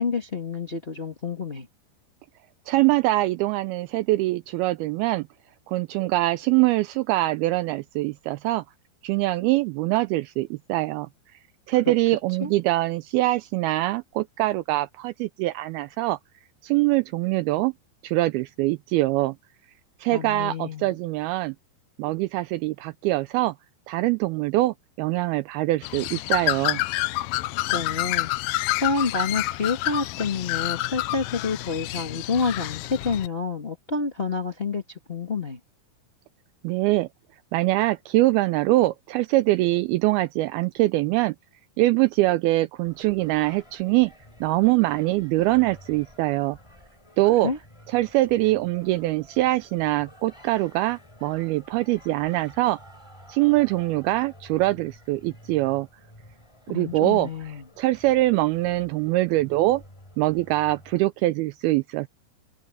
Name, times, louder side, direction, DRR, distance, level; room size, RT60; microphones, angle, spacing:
voice 1, 0.0-1.7 11.8-11.9 12.4-12.5 20.1-21.0 27.7-28.3 28.8-34.8 35.1-35.6 47.4-47.6 56.7-57.6, left 4 dB, 50° left, 0.7 m, -28 dB
voice 2, 2.7-5.3 5.7-8.6 9.0-11.1 11.7-16.2 16.6-17.7 18.0-19.4 20.0-21.5 22.0-23.5 23.9-26.8 36.6-37.1 37.5-41.4 41.8-44.1 44.4-46.6 47.2-47.5 47.9-52.8 53.3-55.9 56.7-57.3 57.8-59.8 60.2-62.1, right 18 dB, 85° right, 2.2 m, -23 dB
Bird, 25.8-33.3, left 18 dB, 85° left, 2.1 m, -28 dB
Singing, 42.8-61.1, equal, 5° left, 4.3 m, -51 dB
omnidirectional pair, 4.9 m